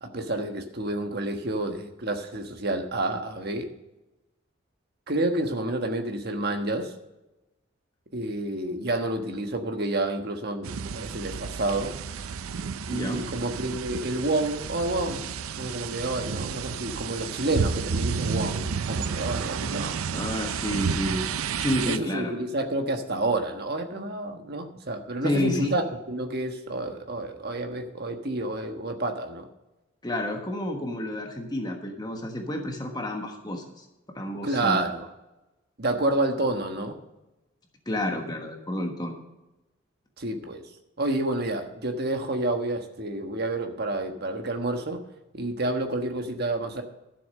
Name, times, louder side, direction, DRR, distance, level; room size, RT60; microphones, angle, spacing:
voice 1, 0.0-3.7 5.1-6.9 8.1-11.9 12.9-15.3 15.6-20.0 20.7-20.8 21.9-29.5 34.4-35.1 35.8-37.0 40.2-40.6 41.0-45.0 45.3-46.8, right 2 dB, 50° right, 5 dB, 1.3 m, -29 dB
sound 1, 10.6-22.0, right 6 dB, 85° right, 0.5 m, -31 dB
voice 2, 12.9-13.2 20.1-21.3 21.6-22.3 25.2-25.7 30.0-33.9 34.1-34.8 37.9-39.2, left 1 dB, 20° left, 3 dB, 1.3 m, -30 dB
12.5 x 7.2 x 6.5 m, 0.99 s
head